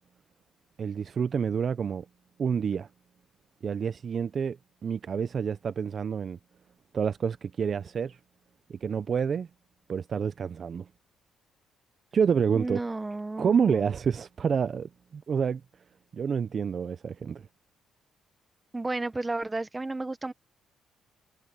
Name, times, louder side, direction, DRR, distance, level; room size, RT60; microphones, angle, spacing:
voice 1, 0.8-2.1 2.4-2.9 3.6-6.4 6.9-8.2 8.7-9.5 9.9-10.8 12.1-12.8 13.4-15.6 16.1-17.4, right 6 dB, 35° right, 0.4 m, -28 dB
voice 2, 12.5-13.9 18.7-20.3, right 2 dB, 10° right, 0.8 m, -32 dB
cardioid pair, 175°, 0 cm